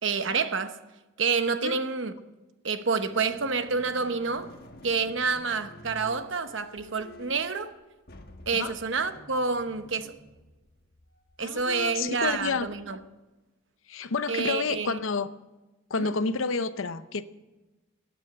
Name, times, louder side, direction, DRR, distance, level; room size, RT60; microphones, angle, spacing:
voice 1, 0.0-0.8 1.2-2.1 2.6-4.5 4.8-7.7 8.5-10.2 11.4-13.0 14.3-15.0 16.0-16.1, right 5 dB, 60° right, 0.9 m, -28 dB
sound 1, 3.0-13.1, left 1 dB, 50° left, 1.3 m, -51 dB
voice 2, 11.4-12.7 13.9-15.3 15.9-17.2, left 4 dB, 75° left, 0.7 m, -29 dB
14.5 x 9.1 x 8.6 m
head